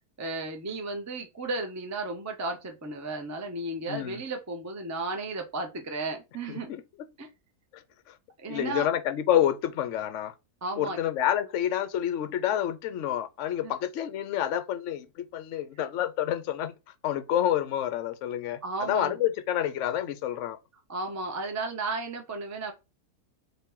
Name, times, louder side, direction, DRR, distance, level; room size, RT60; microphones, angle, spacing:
voice 1, 0.2-6.7 7.2-7.3 8.4-8.9 10.6-11.0 13.6-13.7 18.6-19.2 20.9-22.7, right 3 dB, 20° right, 0.5 m, -34 dB
voice 2, 3.9-4.2 6.5-6.8 7.7-8.2 8.5-10.3 10.8-16.7 17.0-20.6, left 11 dB, 65° left, 0.8 m, -28 dB
3.7 x 2.9 x 3.6 m
omnidirectional pair, 1.7 m